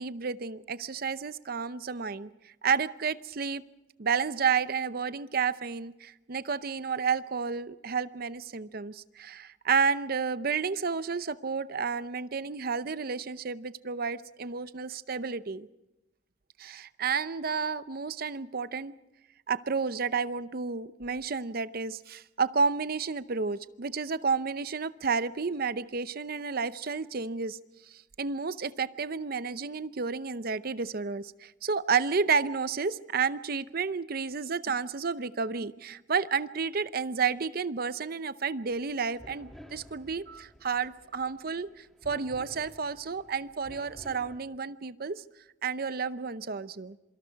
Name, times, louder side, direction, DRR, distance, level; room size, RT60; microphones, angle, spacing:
voice 1, 0.0-3.6 4.0-15.7 16.6-18.9 19.5-27.6 27.9-45.2 45.6-47.0, right 5 dB, 50° right, 14 dB, 0.7 m, -31 dB
sound 1, 38.6-44.4, equal, ahead, 1.8 m, -52 dB
27.0 x 24.5 x 4.7 m, 0.97 s
head